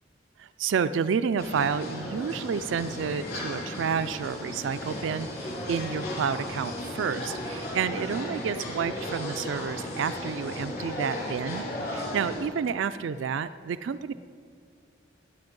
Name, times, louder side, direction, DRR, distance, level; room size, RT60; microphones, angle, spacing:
voice 1, 0.4-14.1, right 6 dB, 75° right, 13 dB, 0.3 m, -30 dB
sound 1, 1.4-12.4, left 1 dB, 55° left, 3.3 m, -35 dB
19.0 x 7.8 x 5.2 m, 2.2 s
head